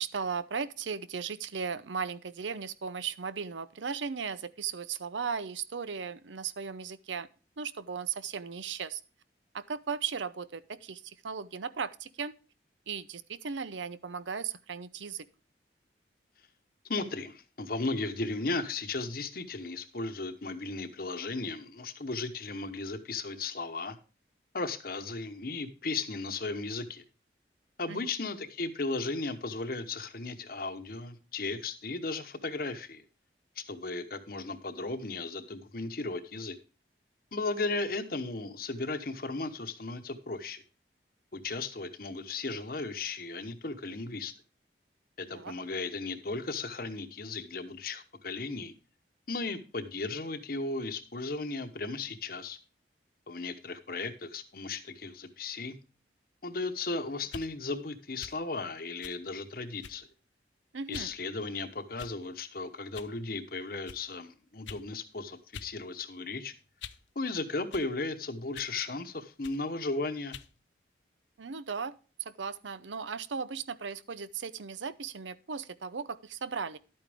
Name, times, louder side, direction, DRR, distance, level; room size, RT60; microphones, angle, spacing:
voice 1, 0.0-7.3 7.6-9.0 9.5-12.3 12.9-15.3 27.9-28.0 45.3-45.5 60.7-61.1 71.4-71.9 72.2-76.8, right 6 dB, 90° right, 15 dB, 0.7 m, -36 dB
voice 2, 16.9-24.0 24.5-27.0 27.8-33.0 33.6-36.6 37.3-40.6 41.3-44.3 45.2-48.7 49.3-52.6 53.3-55.8 56.4-60.1 60.9-66.5 67.1-70.4, left 3 dB, 50° left, 10 dB, 1.0 m, -35 dB
sound 1, 57.2-57.5 58.2-58.4 59.0-59.2 59.8-60.1 60.9-61.1 62.0-62.4 62.9-63.1 63.9-64.0 64.7-64.9 65.5-65.7 66.1-67.1 67.7-67.9 68.5-68.8 69.4-69.6 70.3-70.5, left 7 dB, 85° left, 0.6 m, -46 dB
11.5 x 8.7 x 3.5 m, 0.35 s
head